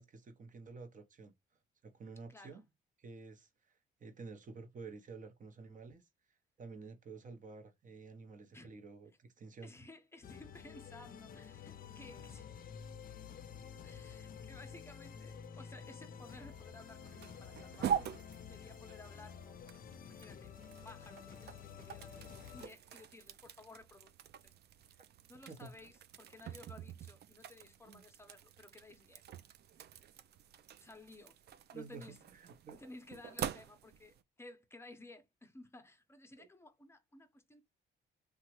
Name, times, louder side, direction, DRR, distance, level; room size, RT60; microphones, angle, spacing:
voice 1, 0.0-1.3 1.8-2.6 3.0-6.0 6.6-9.7 25.5-25.7 27.9-28.0 31.7-32.8 36.4-36.5, right 4 dB, 40° right, 0.9 m, -51 dB
voice 2, 2.3-2.7 8.5-8.7 9.6-12.5 13.8-18.1 18.5-19.6 20.0-22.2 22.5-24.5 25.3-29.2 30.8-31.4 31.7-32.2 32.7-37.6, left 2 dB, 10° left, 0.7 m, -56 dB
sound 1, 10.2-22.7, left 7 dB, 45° left, 0.5 m, -51 dB
sound 2, 16.2-34.2, right 8 dB, 55° right, 0.4 m, -45 dB
2.9 x 2.3 x 2.9 m
cardioid pair, 90°, 20 cm